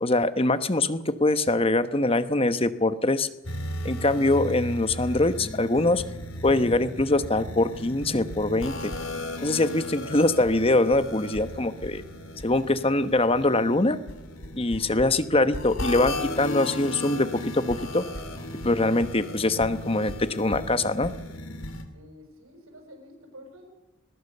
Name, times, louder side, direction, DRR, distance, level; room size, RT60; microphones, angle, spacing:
voice 1, 0.0-3.3 3.8-6.0 6.4-8.9 9.4-12.0 12.4-14.0 14.5-18.0 18.6-21.1, left 2 dB, 25° left, 12 dB, 1.1 m, -23 dB
sound 1, 3.4-21.8, left 1 dB, 70° left, 3.3 m, -36 dB
sound 2, 3.8-21.5, left 1 dB, 90° left, 7.8 m, -49 dB
voice 2, 21.9-23.7, equal, 85° right, 3 dB, 6.7 m, -49 dB
20.5 x 20.5 x 6.9 m, 0.98 s
head